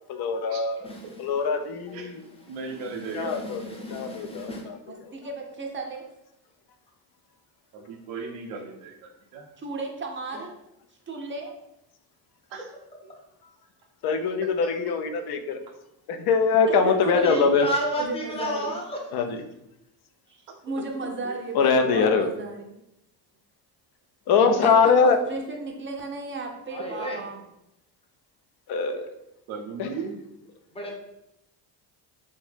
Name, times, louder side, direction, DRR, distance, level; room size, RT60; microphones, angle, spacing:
voice 1, 0.1-0.8 1.2-2.1 3.1-3.6 3.9-4.5 14.0-15.6 16.1-17.7 19.1-19.3 21.5-22.3 24.3-25.2 28.7-29.1 29.8-29.9, left 5 dB, 55° left, 5 dB, 0.5 m, -22 dB
voice 2, 0.8-1.2 2.7-4.7 17.1-19.0 26.7-27.2 30.7-30.9, equal, 10° left, -1 dB, 0.7 m, -32 dB
voice 3, 2.5-3.4 3.7-4.1 7.7-9.5 12.5-12.7 14.4-15.0 21.2-21.4 29.5-30.2, right 4 dB, 70° right, 2 dB, 0.6 m, -37 dB
voice 4, 4.9-6.0 9.6-10.5 11.1-11.5 16.7-17.5 18.0-18.8 20.3-22.8 24.6-27.4, right 3 dB, 25° right, 1 dB, 0.5 m, -34 dB
2.7 x 2.1 x 3.3 m, 0.84 s
supercardioid pair, 70°, 47 cm